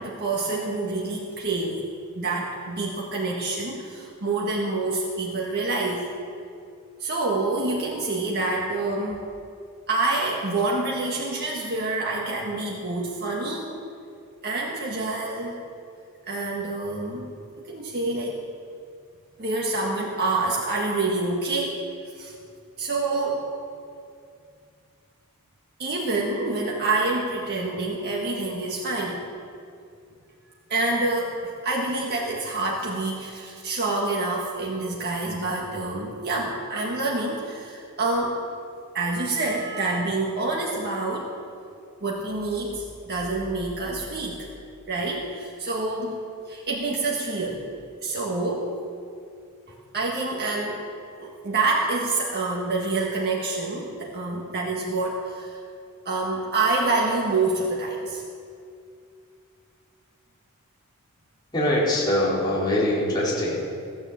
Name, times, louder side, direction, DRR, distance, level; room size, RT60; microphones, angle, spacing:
voice 1, 0.0-1.9 2.1-6.1 7.0-9.3 9.9-13.8 14.4-15.6 16.2-17.3 17.7-18.4 19.4-21.7 22.1-22.3 22.8-23.4 25.8-29.2 30.7-38.4 38.9-41.3 42.0-44.5 44.9-46.2 46.5-47.7 48.0-48.7 49.9-50.8 51.2-55.6 56.0-58.2, right 2 dB, 45° right, -2 dB, 1.7 m, -27 dB
voice 2, 61.5-63.7, left 1 dB, 20° left, -7 dB, 4.1 m, -23 dB
15.5 x 9.8 x 7.6 m, 2.4 s
head